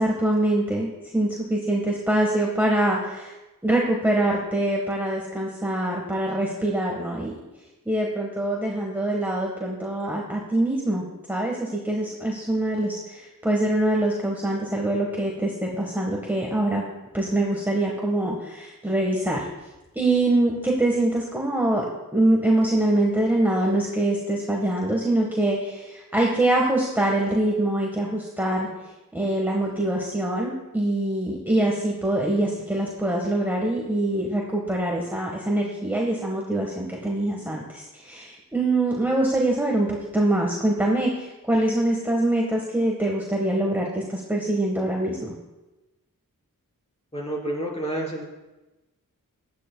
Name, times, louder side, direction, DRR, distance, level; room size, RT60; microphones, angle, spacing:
voice 1, 0.0-3.3 3.6-7.3 7.9-16.8 17.1-19.5 19.9-21.8 22.1-28.7 29.1-45.4, right 1 dB, 5° right, -1 dB, 1.3 m, -24 dB
voice 2, 47.1-48.2, right 1 dB, 15° left, -2 dB, 3.3 m, -29 dB
16.0 x 10.5 x 2.3 m, 1.1 s
wide cardioid pair, 75°, 35 cm